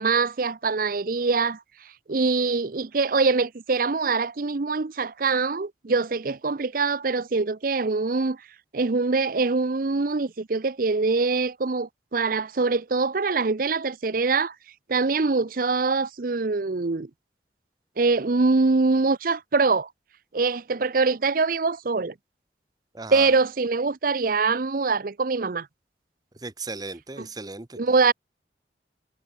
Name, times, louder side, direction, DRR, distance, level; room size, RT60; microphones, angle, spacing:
voice 1, 0.0-1.6 2.1-8.4 8.7-14.5 14.9-17.1 18.0-19.9 20.3-22.1 23.1-25.7 27.2-27.3 27.8-28.1, right 4 dB, 50° right, 0.7 m, -23 dB
voice 2, 22.9-23.3 26.4-27.8, right 3 dB, 20° right, 0.9 m, -36 dB
head